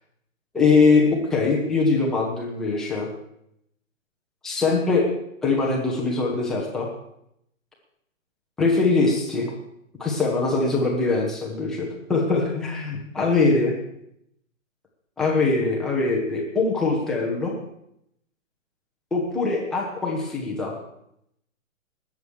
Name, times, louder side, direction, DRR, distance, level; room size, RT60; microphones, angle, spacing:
voice 1, 0.5-3.1 4.4-5.0 5.4-6.9 8.6-9.5 10.0-13.7 15.2-17.5 19.1-20.7, left 3 dB, ahead, -3 dB, 0.5 m, -22 dB
19.5 x 7.1 x 6.3 m, 0.76 s
hypercardioid pair, 155°, 40 cm